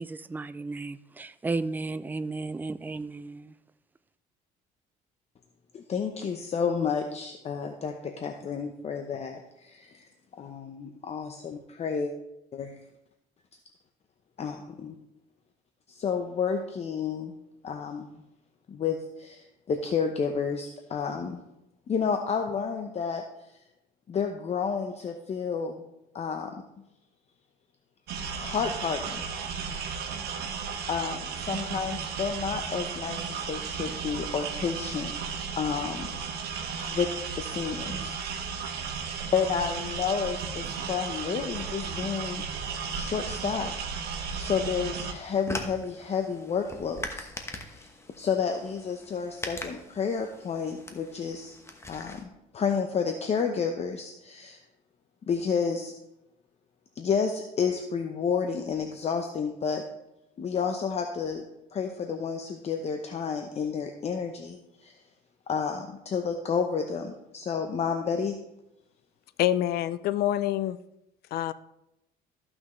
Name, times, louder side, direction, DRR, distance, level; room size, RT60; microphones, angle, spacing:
voice 1, 0.0-3.5, right 3 dB, 10° right, 13 dB, 0.3 m, -34 dB
voice 2, 5.7-10.1 10.4-12.1 12.5-12.8 14.4-14.9 15.9-17.3 17.6-18.1 18.7-21.4 21.9-23.5 24.1-25.8 26.1-26.5 28.4-29.3 30.9-35.1 35.6-36.2 36.9-37.1 37.4-38.2 39.3-42.5 42.9-43.7 44.4-47.9 48.2-51.6 51.9-54.6 55.3-55.9 57.0-59.8 60.4-61.4 61.7-65.0 65.5-68.4, left 6 dB, 40° left, 5 dB, 0.8 m, -30 dB
sound 1, 28.1-45.1, right 6 dB, 70° right, 1.4 m, -34 dB
sound 2, 45.0-52.2, left 2 dB, 15° left, 1.1 m, -42 dB
voice 3, 69.4-70.8 71.3-71.5, left 12 dB, 70° left, 16 dB, 0.5 m, -26 dB
14.0 x 6.1 x 3.2 m, 0.87 s
cardioid pair, 110°, 17 cm